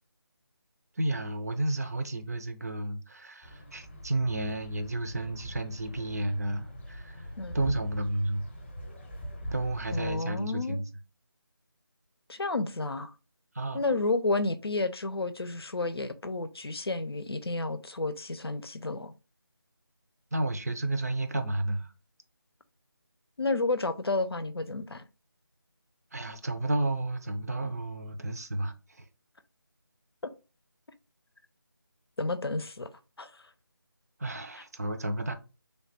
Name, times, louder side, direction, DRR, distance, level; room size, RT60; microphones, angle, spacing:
voice 1, 1.0-7.3 7.5-8.5 9.5-10.9 13.5-13.8 20.3-21.9 26.1-29.1 34.2-35.3, right 1 dB, 40° right, 0.5 m, -32 dB
sound 1, 3.4-10.2, equal, 30° left, 0.8 m, -41 dB
voice 2, 9.9-10.8 12.3-13.1 13.7-19.1 23.4-25.0 30.2-30.3 32.2-32.9 33.2-33.4, left 2 dB, 85° left, 0.6 m, -31 dB
3.3 x 2.3 x 4.0 m
figure-of-eight pair, 165°, 13 cm